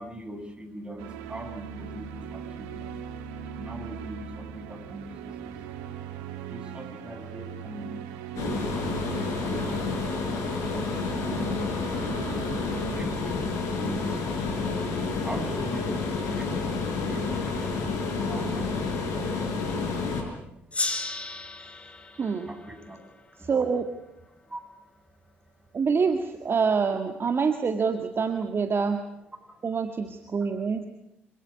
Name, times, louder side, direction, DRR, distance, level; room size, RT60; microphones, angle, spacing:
voice 1, 0.0-2.9 3.5-5.7 6.0-19.1 19.4-22.2 22.5-23.5 24.3-25.8 29.4-29.7, right 1 dB, 15° right, 6 dB, 7.4 m, -43 dB
sound 1, 1.0-13.0, right 8 dB, 75° right, 1.9 m, -39 dB
sound 2, 8.4-20.2, left 4 dB, 60° left, 6.1 m, -29 dB
Gong, 20.7-23.9, left 2 dB, 20° left, 4.3 m, -35 dB
voice 2, 23.4-23.8 25.7-29.0 29.6-30.9, right 5 dB, 40° right, 7 dB, 1.9 m, -26 dB
26.5 x 17.5 x 9.5 m, 0.83 s
figure-of-eight pair, 45°, 6 cm